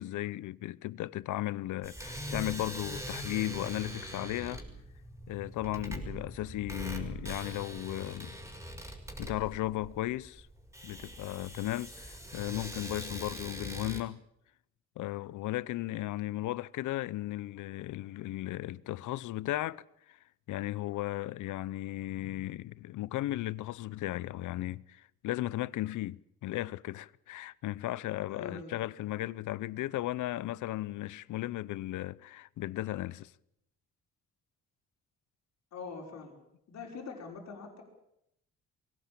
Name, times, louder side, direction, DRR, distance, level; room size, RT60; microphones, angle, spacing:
voice 1, 0.0-4.6 5.3-8.3 9.2-10.5 10.8-14.2 15.0-20.2 20.5-33.3, left 16 dB, 80° left, 0.8 m, -36 dB
sound 1, 1.8-14.0, equal, 10° right, 5.8 m, -42 dB
voice 2, 28.3-28.7 35.7-36.4 36.7-37.8, left 4 dB, 60° left, 5.5 m, -43 dB
22.0 x 17.5 x 8.7 m
cardioid pair, 90°, 30 cm